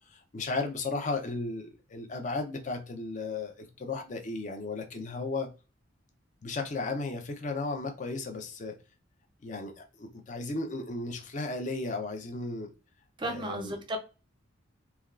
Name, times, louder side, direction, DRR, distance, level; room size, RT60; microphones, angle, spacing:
voice 1, 0.1-5.5 6.4-8.8 9.4-12.7 13.2-13.8, left 3 dB, 35° left, 4 dB, 0.5 m, -35 dB
voice 2, 13.2-14.0, right 1 dB, 20° right, 4 dB, 0.4 m, -34 dB
3.3 x 2.3 x 2.3 m, 0.32 s
head